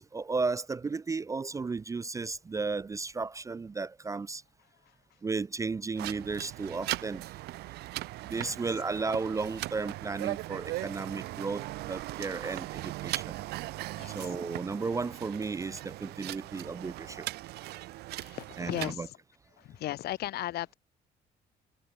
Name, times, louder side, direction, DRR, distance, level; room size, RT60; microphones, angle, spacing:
voice 1, 0.0-4.4 5.2-7.2 8.3-13.4 14.1-17.3 18.6-19.1, right 4 dB, 20° right, 0.4 m, -34 dB
sound 1, 6.0-18.9, right 18 dB, 75° right, 0.5 m, -39 dB
voice 2, 13.9-14.3 18.2-19.2 19.6-20.7, left 14 dB, 70° left, 1.7 m, -37 dB
cardioid pair, 110°, 17 cm